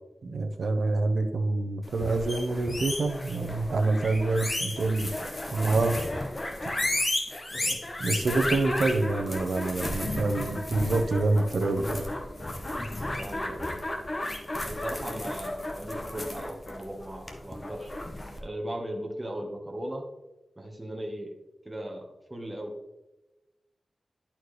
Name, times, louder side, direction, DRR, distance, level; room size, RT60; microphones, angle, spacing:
voice 1, 0.2-5.1 5.5-6.0 6.6-6.7 8.0-12.0, right 3 dB, 70° right, 6 dB, 0.8 m, -26 dB
sound 1, 1.9-18.4, left 1 dB, 30° left, 1.0 m, -33 dB
voice 2, 13.2-13.8 14.6-18.0 18.4-20.0 20.6-21.3 21.6-22.7, right 1 dB, 15° right, 0 dB, 1.1 m, -37 dB
11.0 x 4.4 x 3.2 m, 1.0 s
wide cardioid pair, 100°, 0 cm